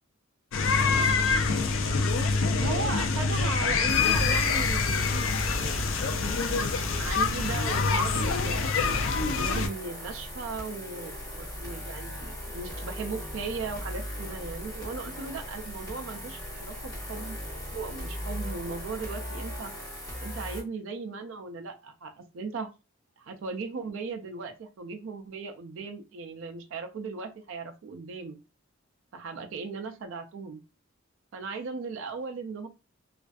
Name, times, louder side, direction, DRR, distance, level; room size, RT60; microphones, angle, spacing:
sound 1, 0.5-9.7, left 4 dB, 70° left, 0.4 m, -26 dB
voice 1, 2.6-5.2 6.9-8.8 9.2-17.4 17.7-19.7 20.2-22.7 23.2-28.4 29.1-30.6 31.3-32.7, right 4 dB, 70° right, 5 dB, 0.3 m, -37 dB
sound 2, 3.9-20.6, equal, 15° left, 1.3 m, -38 dB
2.4 x 2.4 x 2.3 m, 0.30 s
head